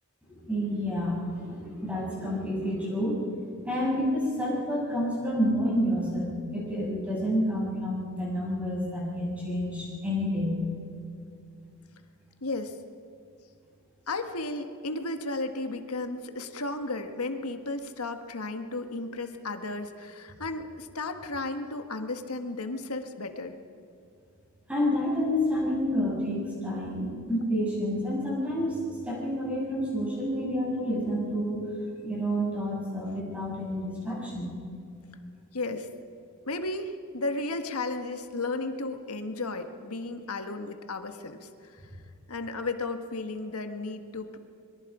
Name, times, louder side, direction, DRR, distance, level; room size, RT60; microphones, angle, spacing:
voice 1, 0.3-3.2 3.6-10.6 24.7-31.6 32.0-34.5, equal, 5° right, -5 dB, 7.1 m, -29 dB
voice 2, 12.4-12.8 14.1-23.6 35.5-35.9 36.4-41.8 42.3-44.4, left 2 dB, 80° left, 7 dB, 1.5 m, -34 dB
25.5 x 22.5 x 5.0 m, 2.5 s
head